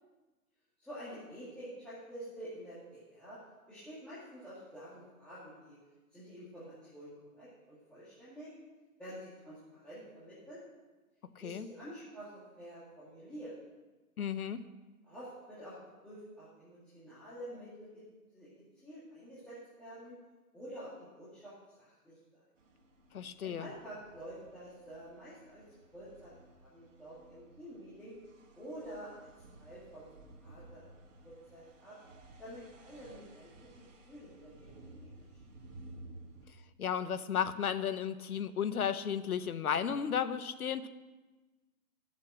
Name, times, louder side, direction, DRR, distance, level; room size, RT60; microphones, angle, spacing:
voice 1, 0.8-3.4 3.7-5.8 6.1-8.5 9.0-10.6 11.4-12.3 12.6-13.5 15.0-15.8 16.0-18.0 18.3-18.5 18.8-20.2 20.5-22.4 23.4-25.6 25.9-26.3 26.6-28.2 28.6-29.3 29.6-30.1 30.4-30.9 31.2-32.0 32.4-35.2, equal, ahead, -12 dB, 2.2 m, -48 dB
voice 2, 14.2-14.6 23.1-23.7 36.8-40.9, left 8 dB, 70° left, 12 dB, 1.0 m, -34 dB
sound 1, 22.6-36.5, right 2 dB, 55° right, 2.1 m, -56 dB
14.0 x 7.5 x 6.2 m, 1.2 s
hypercardioid pair, 145°, 46 cm